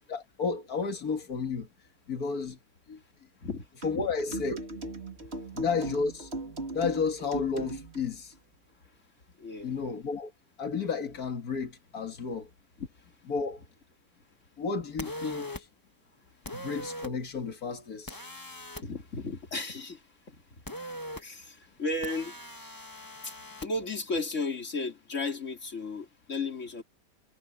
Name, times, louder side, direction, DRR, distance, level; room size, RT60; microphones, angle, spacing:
voice 1, 0.1-1.7 2.1-2.6 2.9-3.0 3.8-4.6 5.5-6.3 6.7-8.3 9.6-10.3 10.6-12.5 13.3-13.6 14.6-15.7 16.5-18.2, left 5 dB, 90° left, 2.2 m, -32 dB
sound 1, 3.8-8.1, right 2 dB, 45° right, 2.8 m, -38 dB
voice 2, 9.4-9.7 12.8-12.9 18.8-20.0 20.3-20.4 21.2-22.3 23.2-23.3 23.6-26.8, left 3 dB, 55° left, 3.4 m, -34 dB
sound 2, 15.0-15.6 16.4-17.1 18.1-18.8 20.7-21.2 22.0-23.7, left 1 dB, 15° left, 1.7 m, -40 dB
omnidirectional pair, 1.5 m